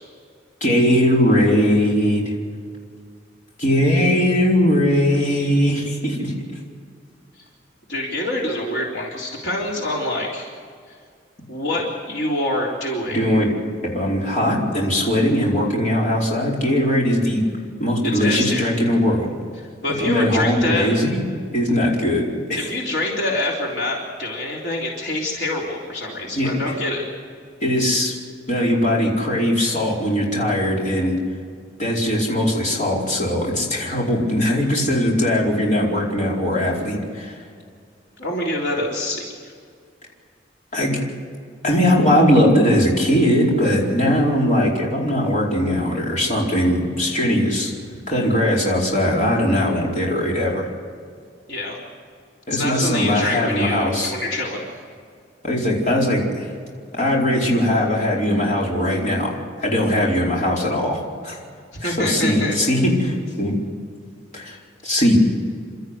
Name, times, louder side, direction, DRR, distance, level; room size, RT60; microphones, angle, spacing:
voice 1, 0.6-2.3 3.6-6.3 13.0-13.5 13.8-17.4 17.8-19.3 20.0-21.2 21.5-22.7 26.3-26.7 27.6-28.1 28.5-31.2 31.8-37.4 40.7-41.0 41.6-47.7 48.1-50.7 52.5-54.1 55.4-56.5 56.9-61.4 61.8-63.6 64.3-64.6 64.8-65.2, equal, 45° left, -3 dB, 4.7 m, -20 dB
voice 2, 7.9-10.5 10.9-11.0 11.5-13.2 18.0-18.7 19.8-20.9 22.5-27.0 38.2-39.5 51.5-51.8 52.5-54.7 61.7-62.6, left 1 dB, 70° left, -3 dB, 3.7 m, -26 dB
28.5 x 13.5 x 8.3 m, 2.1 s
head